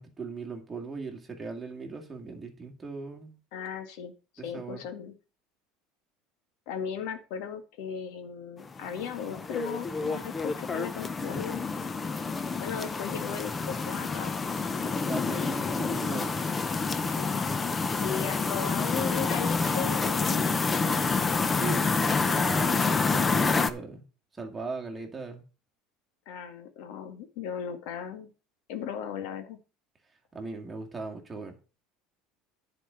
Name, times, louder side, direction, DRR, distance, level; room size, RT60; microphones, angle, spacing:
voice 1, 0.0-3.4 4.4-4.8 15.1-16.3 21.5-24.1 24.3-25.4 30.3-31.6, right 4 dB, 15° right, 1 dB, 2.1 m, -38 dB
voice 2, 3.5-4.1 4.4-5.1 6.7-11.6 12.6-14.3 17.2-17.4 18.0-20.5 26.3-28.3 28.7-29.6, left 8 dB, 70° left, 7 dB, 1.9 m, -36 dB
sound 1, 8.6-23.7, left 4 dB, 15° left, 0.7 m, -28 dB
10.5 x 5.1 x 6.8 m, 0.33 s
cardioid pair, 150°, 0 cm